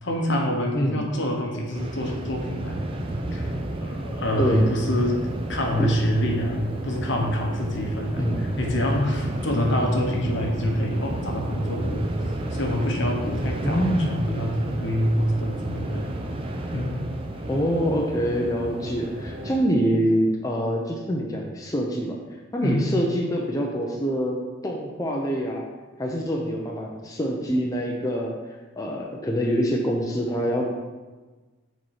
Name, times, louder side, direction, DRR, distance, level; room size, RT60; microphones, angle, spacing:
voice 1, 0.0-2.9 3.3-3.5 3.8-5.2 5.5-16.1 16.7-17.0 22.6-22.9, equal, 60° left, 1 dB, 1.1 m, -26 dB
sound 1, 1.8-19.6, right 1 dB, 25° right, 0.6 m, -32 dB
voice 2, 8.2-8.5 13.6-14.1 17.5-22.2 22.5-24.4 24.6-25.6 26.0-28.3 28.8-30.7, equal, 15° left, -1 dB, 0.5 m, -25 dB
6.5 x 4.3 x 4.8 m, 1.3 s
head